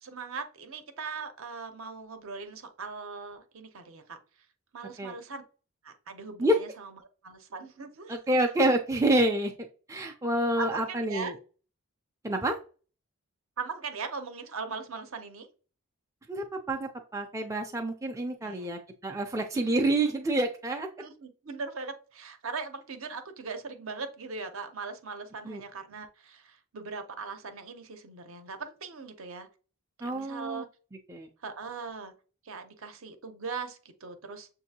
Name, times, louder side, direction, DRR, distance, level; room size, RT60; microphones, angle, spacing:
voice 1, 0.0-4.2 4.7-5.4 5.8-8.2 10.6-11.4 13.6-15.5 18.4-18.7 19.5-19.7 20.0-20.2 21.0-29.5 30.0-30.7 31.4-32.1 32.4-34.5, right 4 dB, 65° right, 8 dB, 0.7 m, -40 dB
voice 2, 8.1-9.5 9.9-11.3 12.2-12.6 16.3-20.9 25.4-25.6 30.0-30.6 31.1-31.3, right 1 dB, 15° right, 3 dB, 0.4 m, -28 dB
6.5 x 2.6 x 2.8 m, 0.37 s
head